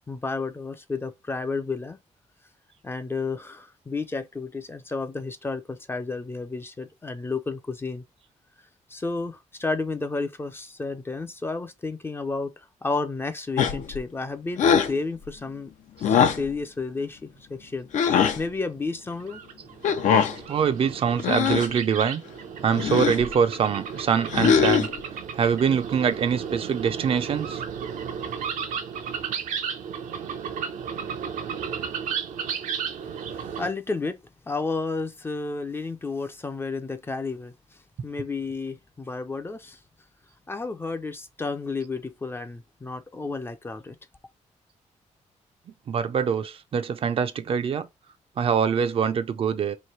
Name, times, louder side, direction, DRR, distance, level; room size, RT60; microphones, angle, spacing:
voice 1, 0.1-2.0 2.8-8.0 8.9-15.7 16.0-19.4 33.0-34.2 34.5-39.8 40.5-44.0, left 3 dB, 20° left, 0.4 m, -32 dB
sound 1, 13.6-14.0 14.6-15.0 16.0-16.5 17.9-18.4 19.8-20.4 21.2-21.7 22.7-23.3 24.3-25.0, left 7 dB, 85° left, 0.7 m, -21 dB
sound 2, 19.1-33.7, right 7 dB, 85° right, 0.7 m, -34 dB
voice 2, 20.5-22.2 22.6-24.9 25.3-27.6 45.9-47.9 48.4-49.8, right 7 dB, 50° right, 0.4 m, -24 dB
3.1 x 2.6 x 4.3 m
wide cardioid pair, 140°, 13 cm